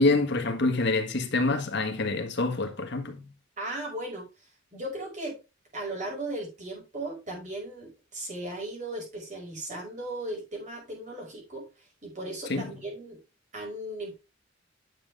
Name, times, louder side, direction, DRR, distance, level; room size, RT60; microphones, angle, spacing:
voice 1, 0.0-3.3 12.5-12.7, left 2 dB, 60° left, 1.6 m, -26 dB
voice 2, 3.6-4.3 4.7-5.4 5.7-11.7 12.0-13.2 13.5-14.2, right 1 dB, 40° right, 5.2 m, -36 dB
10.0 x 6.7 x 3.4 m
head